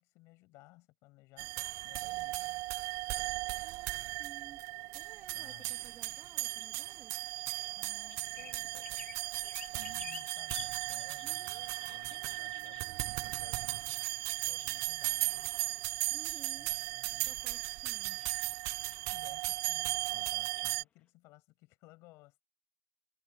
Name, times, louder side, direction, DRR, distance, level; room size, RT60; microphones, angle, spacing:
voice 1, 0.0-2.6 5.3-6.1 7.7-13.8 14.5-15.5 16.6-17.4 19.0-22.4, left 21 dB, 75° left, 5.8 m, -59 dB
sound 1, 1.4-20.8, right 22 dB, 90° right, 0.4 m, -36 dB
voice 2, 3.6-4.6 4.9-7.1 11.2-11.7 12.1-13.1 16.1-16.8 17.1-18.3, right 8 dB, 35° right, 1.8 m, -57 dB
sound 2, 5.4-6.7 7.2-7.7 8.1-13.0 14.3-14.7 15.0-15.1 15.6-16.0 16.3-16.4 17.0-17.3 18.2-18.5 18.9-19.0 19.7-20.0 20.5-20.7, left 7 dB, 30° left, 1.8 m, -52 dB
cardioid pair, 175°, 5 cm